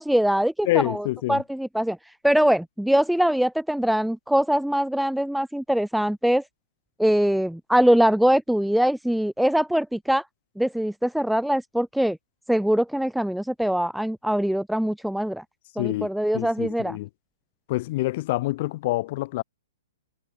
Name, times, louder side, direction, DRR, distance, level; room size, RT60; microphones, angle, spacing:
voice 1, 0.0-2.0 2.2-6.4 7.0-10.2 10.6-12.2 12.5-15.4 15.8-17.0, equal, ahead, 0.5 m, -22 dB
voice 2, 0.7-1.4 15.8-16.1 16.3-17.1 17.7-19.4, left 18 dB, 45° left, 4.3 m, -26 dB
hypercardioid pair, 145°, 0 cm